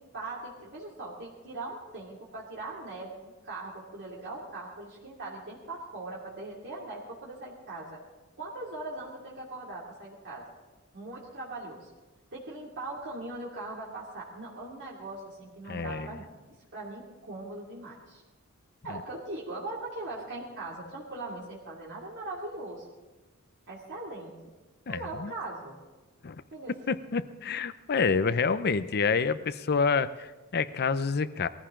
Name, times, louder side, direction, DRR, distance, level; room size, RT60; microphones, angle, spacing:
voice 1, 0.0-8.0 8.4-10.4 10.9-11.9 12.3-16.4 16.7-18.2 18.8-22.9 23.7-24.5 24.9-25.8 26.5-26.7, right 2 dB, 60° right, -5 dB, 2.6 m, -40 dB
voice 2, 15.7-16.1 18.9-19.0 24.9-25.3 26.2-26.4 26.9-31.5, left 5 dB, 50° left, 14 dB, 0.6 m, -28 dB
20.0 x 14.5 x 3.8 m, 1.2 s
head